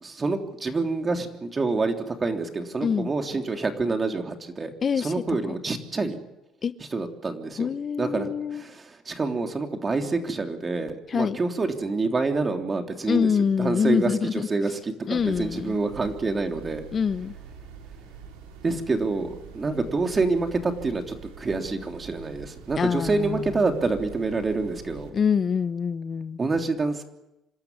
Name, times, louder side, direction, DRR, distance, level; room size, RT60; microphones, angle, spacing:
voice 1, 0.0-6.2 6.9-7.7 8.0-13.3 13.6-16.9 18.6-25.1 26.4-27.0, right 3 dB, 30° right, 4 dB, 3.3 m, -27 dB
voice 2, 4.8-5.4 6.6-6.7 7.6-8.6 11.1-11.4 13.1-14.5 15.1-15.8 16.9-17.3 22.8-23.5 25.1-26.4, left 6 dB, 40° left, 14 dB, 0.8 m, -25 dB
sound 1, 15.1-25.1, right 6 dB, 90° right, 3.6 m, -44 dB
26.5 x 13.5 x 9.7 m, 0.91 s
supercardioid pair, 75°, 0 cm